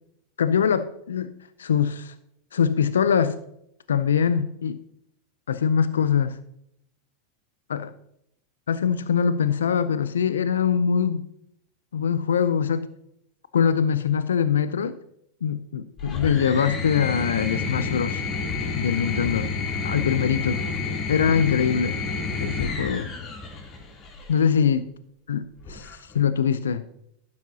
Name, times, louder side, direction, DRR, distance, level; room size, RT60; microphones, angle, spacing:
voice 1, 0.4-1.3 1.6-2.1 2.5-3.4 3.9-4.8 5.5-6.4 7.7-7.9 8.7-11.2 11.9-12.9 13.5-15.0 15.4-18.2 18.8-19.5 19.8-20.6 21.1-22.0 22.4-23.1 24.3-24.9 25.3-26.9, left 7 dB, 85° left, 13 dB, 0.4 m, -23 dB
sound 1, 16.0-24.4 25.6-26.2, left 4 dB, 40° left, 3.0 m, -30 dB
11.5 x 9.5 x 2.8 m, 0.76 s
hypercardioid pair, 95°, 0 cm